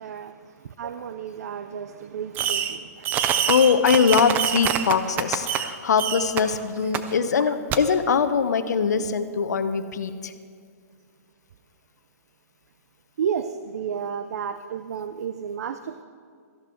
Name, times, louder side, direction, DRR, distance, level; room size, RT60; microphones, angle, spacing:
voice 1, 0.0-3.2 7.4-7.6 8.9-9.1 13.2-16.0, right 7 dB, 70° right, 0.5 m, -32 dB
Fireworks, 2.3-2.8 3.0-5.7 6.0-6.4 6.9-7.0 7.7-7.8, right 9 dB, 20° right, 0.5 m, -25 dB
voice 2, 3.5-10.3, left 6 dB, 85° left, 0.8 m, -22 dB
13.5 x 11.5 x 4.4 m
hypercardioid pair, 150°, 9 cm